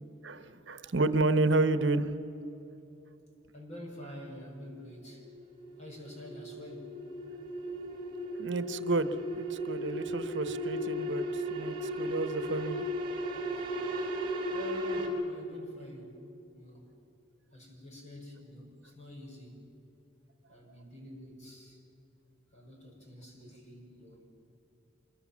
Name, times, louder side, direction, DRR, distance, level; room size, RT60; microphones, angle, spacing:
voice 1, 0.2-2.2 8.4-12.9, right 2 dB, 75° right, 12 dB, 1.0 m, -30 dB
voice 2, 3.5-5.2 5.8-7.0 14.5-16.1 16.5-16.8 17.5-19.6 20.5-21.8 22.5-24.2, equal, 35° left, 0 dB, 5.9 m, -47 dB
sound 1, 4.5-15.1, equal, 30° right, 6.0 m, -36 dB
25.5 x 22.5 x 7.4 m, 2.9 s
head